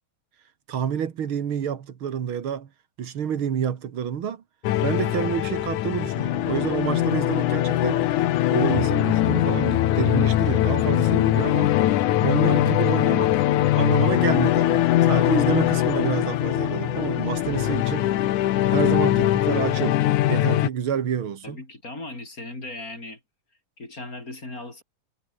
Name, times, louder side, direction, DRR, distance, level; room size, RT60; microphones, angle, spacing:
voice 1, 0.7-2.7 3.0-4.4 4.8-8.1 8.5-11.7 12.2-13.5 13.8-18.1 18.7-20.0 20.3-21.6, right 8 dB, 50° right, 2.1 m, -28 dB
sound 1, 4.6-20.7, left 13 dB, 75° left, 2.5 m, -21 dB
voice 2, 21.4-23.2 23.8-24.8, left 2 dB, 25° left, 5.5 m, -37 dB
omnidirectional pair, 3.7 m